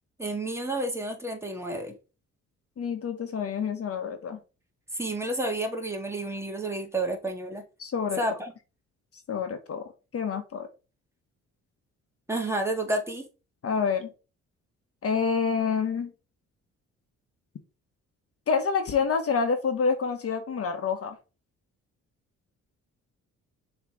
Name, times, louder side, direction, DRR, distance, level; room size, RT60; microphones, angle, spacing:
voice 1, 0.2-1.9 4.9-7.6 8.2-8.5 12.3-13.2, right 1 dB, 10° right, 2 dB, 1.9 m, -30 dB
voice 2, 2.8-4.4 7.8-8.2 9.3-9.8 10.1-10.7 13.6-14.1 15.0-16.1 18.5-21.2, left 5 dB, 50° left, 7 dB, 1.4 m, -27 dB
6.7 x 3.5 x 4.9 m, 0.32 s
cardioid pair, 90°, 30 cm